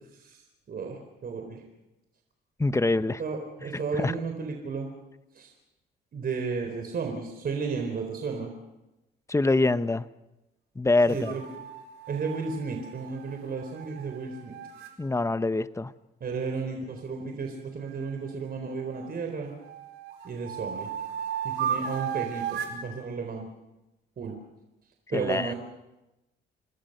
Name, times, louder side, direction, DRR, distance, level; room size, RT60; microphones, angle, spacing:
voice 1, 0.7-1.6 3.2-4.9 5.4-5.5 6.1-8.5 11.1-11.4 12.1-14.5 16.2-19.5 20.2-20.9 21.4-23.5 24.2-24.4 25.1-25.5, right 5 dB, 50° right, 3 dB, 4.0 m, -33 dB
voice 2, 2.6-3.2 3.6-4.1 9.3-10.1 10.8-11.4 15.0-15.9 25.1-25.5, left 2 dB, 15° left, 13 dB, 0.9 m, -25 dB
sound 1, 11.1-14.9 17.9-19.1 19.6-22.8, right 8 dB, 85° right, 4.6 m, -36 dB
27.5 x 20.0 x 6.7 m, 1.0 s
cardioid pair, 90°, 20 cm